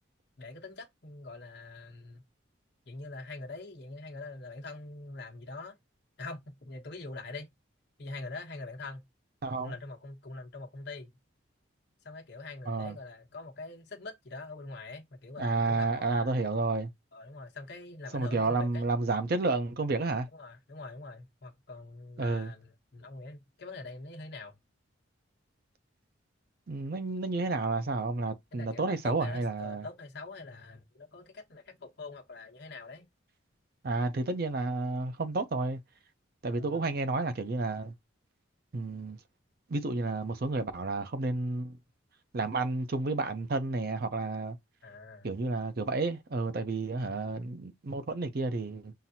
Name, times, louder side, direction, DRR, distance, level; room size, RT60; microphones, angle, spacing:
voice 1, 0.4-2.2 2.9-5.8 6.2-7.5 8.0-9.0 9.6-11.2 12.0-16.5 17.1-18.9 20.3-24.5 28.5-33.1 36.5-36.9 44.8-45.3 47.1-47.4, left 3 dB, 55° left, 1.0 m, -44 dB
voice 2, 9.4-9.7 12.7-13.0 15.4-16.9 18.1-20.3 22.2-22.5 26.7-29.9 33.8-35.8 36.4-37.9 38.7-39.2 39.7-41.7 42.3-44.6 45.2-48.9, right 3 dB, 50° right, 0.5 m, -31 dB
5.7 x 2.5 x 2.8 m
head